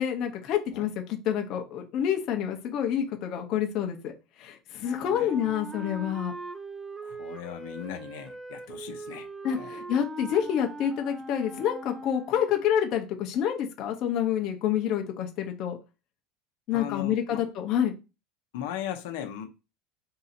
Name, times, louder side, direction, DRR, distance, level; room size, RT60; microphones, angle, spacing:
voice 1, 0.0-4.1 4.4-6.3 9.4-15.8 16.7-17.9, left 9 dB, 40° left, 3 dB, 0.8 m, -28 dB
Wind instrument woodwind instrument, 4.8-12.5, right 2 dB, 15° right, 0.4 m, -41 dB
voice 2, 4.9-5.4 7.0-9.3 9.5-9.7 16.7-17.4 18.5-19.7, left 10 dB, 75° left, 5 dB, 0.8 m, -38 dB
3.7 x 2.8 x 4.3 m, 0.28 s
supercardioid pair, 155°, 0 cm